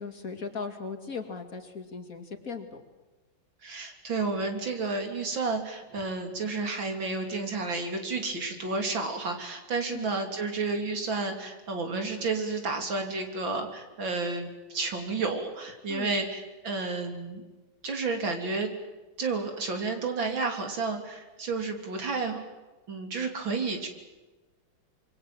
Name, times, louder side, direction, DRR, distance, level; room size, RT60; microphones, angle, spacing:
voice 1, 0.0-2.8 9.9-10.1 15.9-16.1, left 5 dB, 45° left, 5 dB, 2.8 m, -38 dB
voice 2, 3.6-17.4 17.8-18.7 19.2-22.4 22.9-23.9, right 3 dB, 75° right, 4 dB, 4.0 m, -31 dB
26.5 x 24.0 x 7.7 m, 1.2 s
omnidirectional pair, 2.1 m